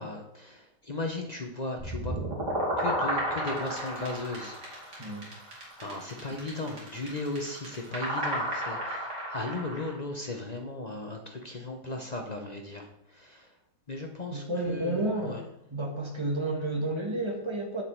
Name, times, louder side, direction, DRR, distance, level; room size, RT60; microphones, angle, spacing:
voice 1, 0.0-2.2 2.8-4.6 4.8-5.2 5.8-13.5 13.9-15.0 15.2-15.4, left 2 dB, 45° left, 3 dB, 0.5 m, -36 dB
sound 1, 1.8-9.9, equal, 70° right, 3.3 m, -32 dB
voice 2, 14.3-15.4 15.7-17.8, right 1 dB, 15° right, 1 dB, 1.3 m, -31 dB
7.9 x 7.0 x 4.5 m, 0.79 s
omnidirectional pair, 1.9 m